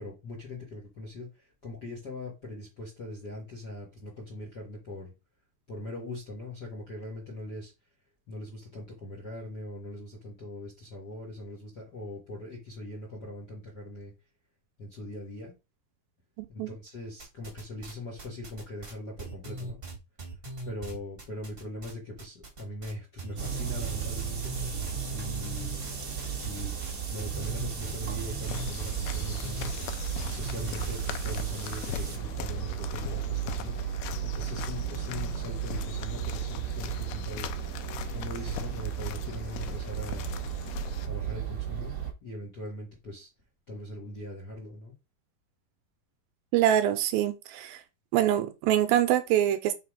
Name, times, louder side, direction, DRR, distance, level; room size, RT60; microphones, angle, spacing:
voice 1, 0.0-5.1 5.7-7.7 8.3-14.1 14.8-15.5 16.5-19.8 20.6-24.5 24.8-25.8 26.4-26.8 27.1-30.0 30.2-37.5 37.8-40.3 41.1-42.0 42.2-43.3 43.7-44.9, left 1 dB, 50° left, 1.2 m, -41 dB
voice 2, 16.4-16.7 46.5-47.8 48.1-49.7, right 11 dB, 80° right, 2.4 m, -25 dB
sound 1, 17.2-17.9 18.2-21.9 22.2-22.9 23.2-31.0, right 2 dB, 25° right, 1.2 m, -40 dB
sound 2, 23.4-42.1, right 9 dB, 55° right, 0.9 m, -35 dB
sound 3, 28.5-41.1, left 5 dB, 80° left, 2.6 m, -39 dB
5.8 x 4.1 x 4.9 m
omnidirectional pair, 4.4 m